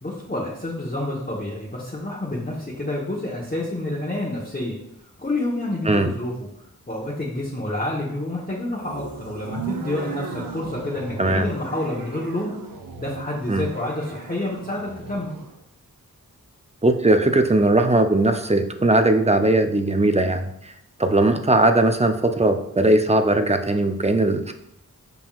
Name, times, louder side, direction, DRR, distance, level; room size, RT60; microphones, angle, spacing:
voice 1, 0.0-4.8 5.2-6.3 6.9-12.5 13.0-15.3, left 1 dB, 25° left, -5 dB, 1.0 m, -28 dB
sound 1, 8.7-15.6, right 5 dB, 80° right, 0.6 m, -37 dB
voice 2, 11.2-11.5 13.5-13.6 16.8-20.7 21.0-24.5, right 2 dB, 20° right, 7 dB, 0.4 m, -19 dB
5.7 x 3.8 x 2.3 m, 0.77 s
wide cardioid pair, 40°, 34 cm